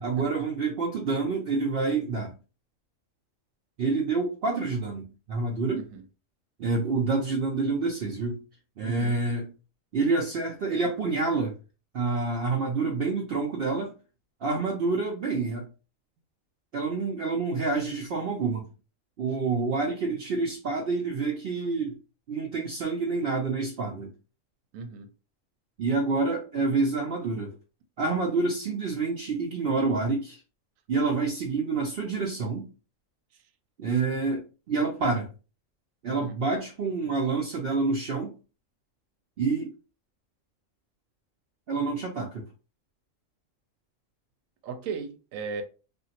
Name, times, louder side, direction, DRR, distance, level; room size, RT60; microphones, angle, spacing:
voice 1, 0.0-2.3 3.8-5.8 6.6-8.4 8.8-9.5 9.9-11.6 11.9-13.9 14.4-15.6 16.7-18.7 19.2-22.0 22.3-24.1 25.8-27.5 28.0-30.4 30.9-32.7 33.8-35.3 36.0-38.3 39.4-39.7 41.7-42.4, right 3 dB, 60° right, 0.7 m, -28 dB
voice 2, 8.8-9.2 24.7-25.1 36.0-36.4 44.6-45.6, right 5 dB, 80° right, 1.0 m, -36 dB
2.9 x 2.4 x 2.8 m
omnidirectional pair, 1.4 m